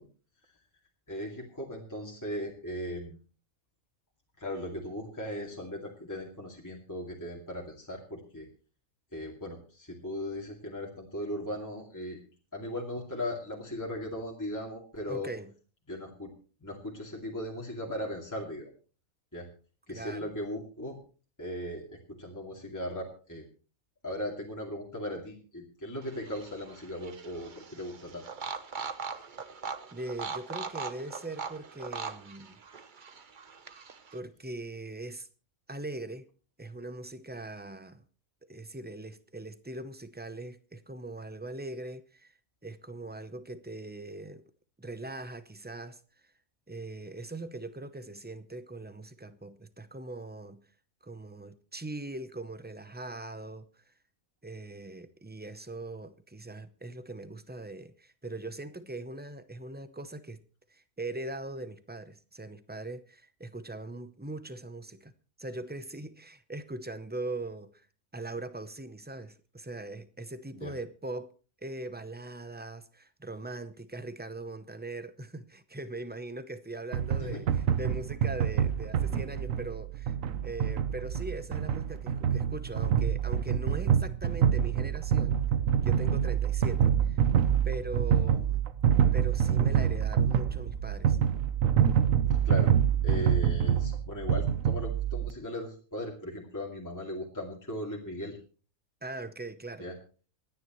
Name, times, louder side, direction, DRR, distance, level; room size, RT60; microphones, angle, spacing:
voice 1, 1.1-3.2 4.4-8.5 9.1-12.2 12.5-15.3 15.9-16.3 16.6-18.7 19.3-19.5 19.9-21.0 21.4-23.4 24.0-28.2 70.5-70.7 77.2-77.4 92.2-92.7 93.0-98.4 99.8-99.9, left 1 dB, 15° left, 2.4 m, -38 dB
voice 2, 15.1-15.5 19.9-20.3 29.9-32.6 34.1-35.3 35.7-36.3 36.6-38.0 38.5-42.3 42.6-44.5 44.8-46.0 46.7-50.6 51.0-53.9 54.4-60.4 60.7-65.1 65.4-67.9 68.1-71.3 71.6-80.1 80.4-85.4 85.8-87.2 87.6-88.6 89.1-91.2 99.0-99.9, right 2 dB, 10° right, 0.5 m, -41 dB
sound 1, 26.0-34.2, right 5 dB, 40° right, 0.9 m, -41 dB
sound 2, 76.9-95.3, right 9 dB, 75° right, 1.2 m, -26 dB
27.5 x 9.9 x 3.1 m
omnidirectional pair, 1.4 m